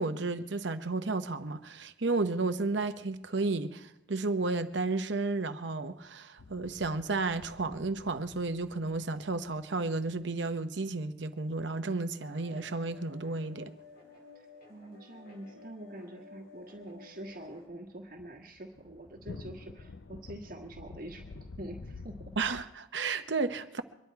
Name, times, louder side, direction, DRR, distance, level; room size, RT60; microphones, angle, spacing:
voice 1, 0.0-13.7 22.4-23.8, right 3 dB, 70° right, 0.9 m, -32 dB
sound 1, 6.4-10.3 17.2-22.6, left 3 dB, 85° left, 0.7 m, -49 dB
sound 2, 12.2-17.7, left 4 dB, 50° left, 3.7 m, -54 dB
voice 2, 14.3-21.3 21.6-22.3, right 1 dB, 50° right, 1.5 m, -45 dB
24.0 x 10.5 x 4.6 m
head